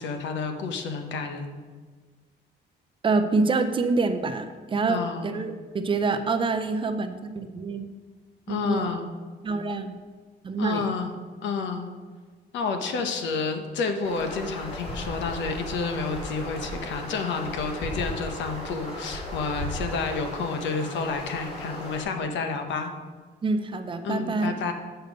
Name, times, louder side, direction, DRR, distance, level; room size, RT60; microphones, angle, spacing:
voice 1, 0.0-1.6 4.9-5.4 8.5-9.1 10.6-11.1 11.4-11.9 12.5-22.9 24.0-24.7, left 4 dB, 80° left, 6 dB, 1.0 m, -30 dB
voice 2, 3.0-7.9 8.5-8.9 9.4-9.9 10.4-10.9 23.4-24.5, right 3 dB, 25° right, 8 dB, 0.5 m, -26 dB
sound 1, 14.0-22.0, left 1 dB, 30° left, 2.7 m, -36 dB
8.0 x 6.8 x 5.2 m, 1.5 s
cardioid pair, 150°, 19 cm